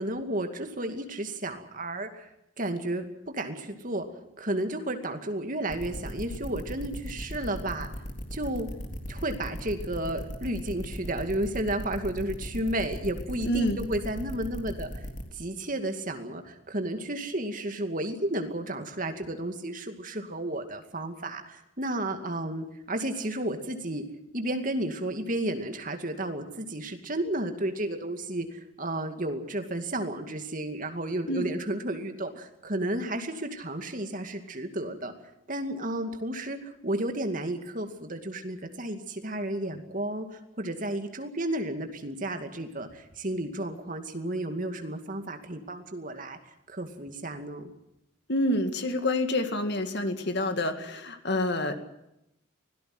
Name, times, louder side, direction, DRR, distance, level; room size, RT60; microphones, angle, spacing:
voice 1, 0.0-2.3 2.6-4.1 4.4-7.9 8.3-8.7 9.1-15.1 15.3-24.0 24.3-35.1 35.5-46.4 46.7-47.7, right 1 dB, 40° right, 6 dB, 2.4 m, -32 dB
sound 1, 5.7-15.2, equal, 35° left, 3.5 m, -37 dB
voice 2, 13.4-13.8 31.3-31.5 48.3-51.7, left 1 dB, 55° left, 7 dB, 2.3 m, -27 dB
25.0 x 17.5 x 7.9 m, 0.84 s
head